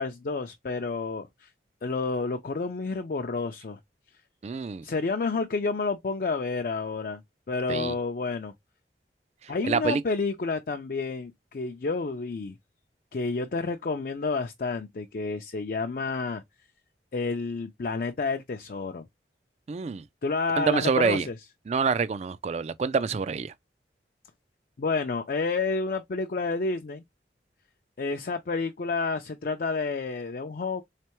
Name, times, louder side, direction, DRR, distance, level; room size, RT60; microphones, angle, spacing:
voice 1, 0.0-1.5 1.8-3.8 4.8-7.2 7.5-8.5 9.5-12.6 13.1-16.4 17.1-19.0 20.2-21.4 24.8-27.0 28.0-30.8, left 4 dB, 50° left, 0.4 m, -30 dB
voice 2, 4.4-4.8 7.7-7.9 9.7-10.0 19.7-20.0 20.6-21.3 21.7-23.5, right 5 dB, 40° right, 0.3 m, -26 dB
3.7 x 3.3 x 3.0 m
head